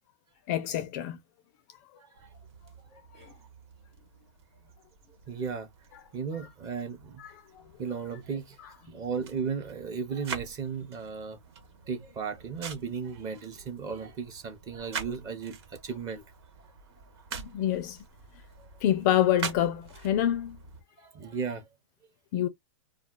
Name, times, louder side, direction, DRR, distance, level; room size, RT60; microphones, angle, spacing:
voice 1, 0.5-1.2 7.2-7.3 17.4-18.0 18.8-20.6 22.3-22.5, left 11 dB, 35° left, 0.4 m, -26 dB
voice 2, 2.0-2.3 5.3-5.7 6.1-7.2 7.8-11.4 11.9-16.2 21.0-21.6, right 6 dB, 20° right, 0.7 m, -35 dB
sound 1, 2.1-20.8, right 6 dB, 60° right, 1.2 m, -45 dB
2.3 x 2.3 x 3.7 m
hypercardioid pair, 155°, 16 cm